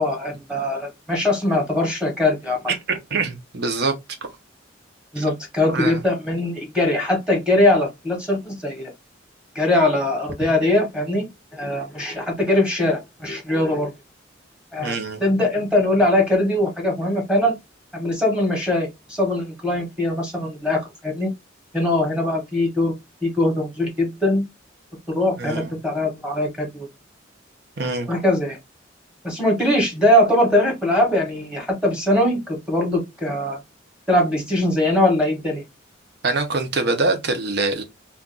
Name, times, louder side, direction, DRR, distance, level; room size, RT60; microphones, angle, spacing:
voice 1, 0.0-2.6 5.1-8.9 9.5-11.3 11.5-13.9 14.7-14.9 15.2-17.5 17.9-21.3 21.7-22.9 23.2-24.4 25.1-26.9 28.1-28.6 29.2-33.6 34.1-35.6, left 1 dB, 5° right, 1.0 m, -21 dB
voice 2, 2.7-3.9 5.2-5.3 5.6-6.0 14.8-15.2 25.4-25.7 27.8-28.1 36.2-37.8, right 3 dB, 55° right, 0.8 m, -24 dB
2.5 x 2.3 x 3.7 m
head